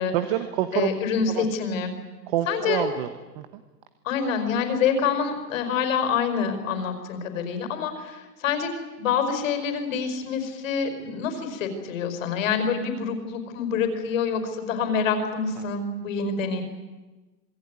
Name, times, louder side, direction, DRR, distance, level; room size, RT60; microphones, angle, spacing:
voice 1, 0.1-0.9 1.4-1.5 2.3-3.1 3.4-3.5, right 13 dB, 30° right, 11 dB, 1.1 m, -26 dB
voice 2, 0.7-1.9 2.5-2.9 4.0-8.7 9.0-16.6, left 6 dB, 50° left, 7 dB, 5.3 m, -26 dB
27.0 x 19.5 x 9.7 m, 1.2 s
hypercardioid pair, 160°, 49 cm